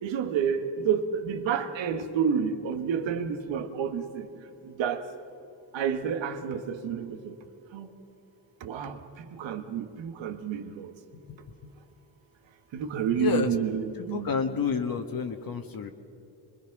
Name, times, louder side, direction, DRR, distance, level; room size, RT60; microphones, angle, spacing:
voice 1, 0.0-4.3 4.8-5.0 5.7-7.3 7.7-7.9 8.6-9.0 9.3-10.9 12.7-14.6, right 7 dB, 80° right, 7 dB, 1.6 m, -29 dB
voice 2, 13.2-13.5 14.0-15.9, left 6 dB, 50° left, 5 dB, 1.4 m, -29 dB
25.5 x 21.5 x 6.0 m, 2.8 s
cardioid pair, 90°, 44 cm